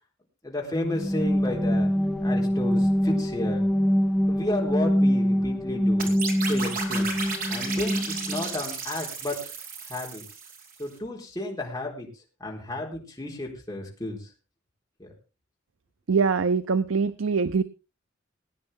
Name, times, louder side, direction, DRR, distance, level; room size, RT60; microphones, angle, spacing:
voice 1, 0.4-1.9 2.2-3.6 4.3-6.2 6.5-9.4 9.9-10.2 10.8-12.1 12.4-14.2 15.0-15.1, left 1 dB, 20° left, -2 dB, 4.0 m, -33 dB
sound 1, 0.7-8.5, equal, ahead, 1.2 m, -24 dB
sound 2, 6.0-10.8, right 4 dB, 45° right, 2.9 m, -34 dB
voice 2, 16.1-17.6, right 5 dB, 90° right, 13 dB, 0.6 m, -23 dB
19.5 x 9.8 x 3.7 m, 0.31 s
head